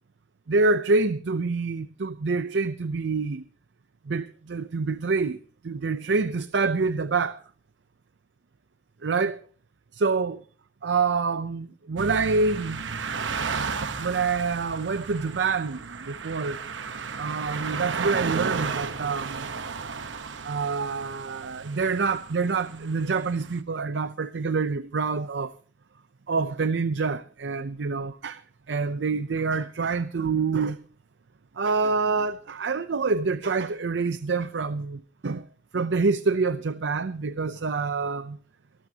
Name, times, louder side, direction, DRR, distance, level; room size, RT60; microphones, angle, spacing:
voice 1, 0.5-3.4 4.1-7.4 9.0-9.4 9.9-10.4 10.8-12.8 14.0-16.6 17.2-19.4 20.4-25.5 26.3-28.4 28.7-30.8 31.6-35.4 35.7-38.4, right 4 dB, 65° right, 0.5 m, -26 dB
sound 1, 12.0-23.6, right 5 dB, 90° right, 1.0 m, -34 dB
23.0 x 13.0 x 2.8 m
head